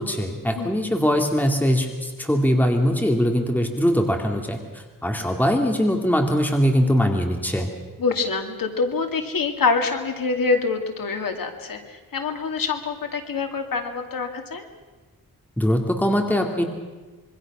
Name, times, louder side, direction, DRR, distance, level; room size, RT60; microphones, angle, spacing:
voice 1, 0.0-7.7 15.6-16.6, equal, 5° left, 3 dB, 2.3 m, -22 dB
voice 2, 0.6-0.9 8.0-14.7, left 4 dB, 75° left, 5 dB, 2.4 m, -25 dB
26.0 x 24.0 x 6.1 m, 1.3 s
wide cardioid pair, 140°, 34 cm